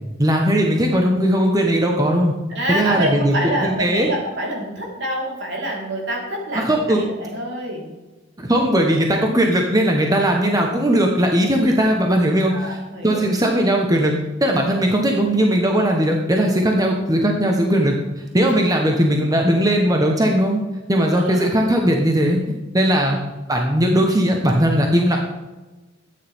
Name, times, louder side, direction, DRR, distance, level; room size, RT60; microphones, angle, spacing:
voice 1, 0.2-2.3 2.7-4.1 6.5-7.0 8.4-12.8 13.0-20.6 20.9-22.4 22.7-23.2 23.5-25.2, equal, 20° right, 2 dB, 1.1 m, -18 dB
voice 2, 2.5-7.9 9.2-9.3 11.7-11.8 12.5-13.2 14.5-14.7 21.1-21.5 22.8-22.9 24.9-25.1, right 1 dB, 65° right, -2 dB, 4.1 m, -27 dB
13.0 x 9.7 x 3.6 m, 1.2 s
head